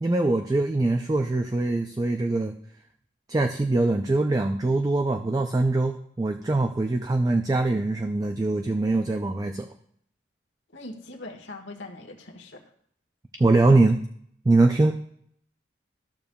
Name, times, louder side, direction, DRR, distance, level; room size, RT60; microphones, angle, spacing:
voice 1, 0.0-2.5 3.3-9.7 13.4-14.0 14.5-14.9, right 2 dB, 20° right, 5 dB, 0.3 m, -23 dB
voice 2, 10.7-12.7 14.8-14.9, left 2 dB, 70° left, 2 dB, 1.4 m, -41 dB
14.5 x 6.9 x 2.3 m, 0.66 s
head